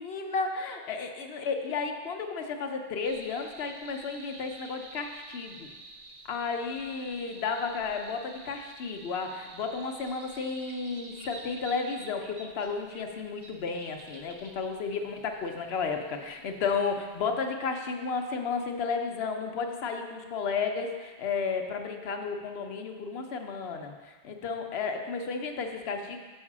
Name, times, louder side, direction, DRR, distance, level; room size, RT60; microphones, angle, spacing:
voice 1, 0.0-5.7 6.2-26.2, left 5 dB, 75° left, 4 dB, 1.0 m, -33 dB
sound 1, 3.0-17.5, right 3 dB, 45° right, 0.7 m, -50 dB
6.4 x 5.4 x 6.0 m, 1.3 s
omnidirectional pair, 1.1 m